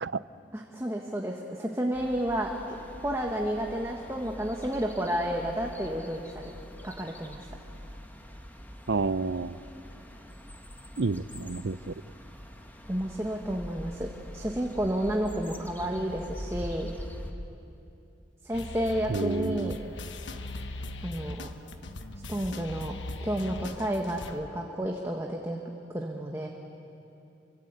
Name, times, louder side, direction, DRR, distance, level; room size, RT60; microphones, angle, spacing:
voice 1, 0.5-2.5 3.0-6.5 6.8-7.5 12.9-16.9 18.4-19.8 21.0-21.5 22.3-22.9 23.2-25.6 25.9-26.5, equal, 15° right, 1 dB, 1.5 m, -31 dB
sound 1, 1.9-17.3, equal, 10° left, 1.6 m, -44 dB
voice 2, 8.9-9.6 11.0-11.9 19.1-19.8, right 3 dB, 70° right, 15 dB, 0.7 m, -30 dB
sound 2, 18.5-24.4, left 2 dB, 80° left, 1.3 m, -40 dB
29.0 x 24.5 x 8.3 m, 2.8 s
head